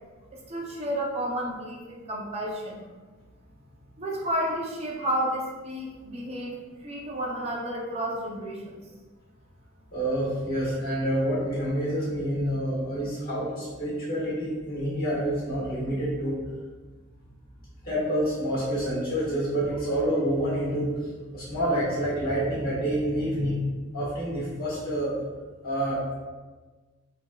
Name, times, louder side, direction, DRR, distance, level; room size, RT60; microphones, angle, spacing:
voice 1, 0.3-2.8 4.0-8.7, equal, 30° right, -2 dB, 0.5 m, -31 dB
voice 2, 9.9-16.4 17.8-20.9 21.3-23.6 23.9-25.2 25.6-26.1, equal, 45° left, -8 dB, 1.4 m, -28 dB
3.5 x 2.7 x 2.2 m, 1.3 s
head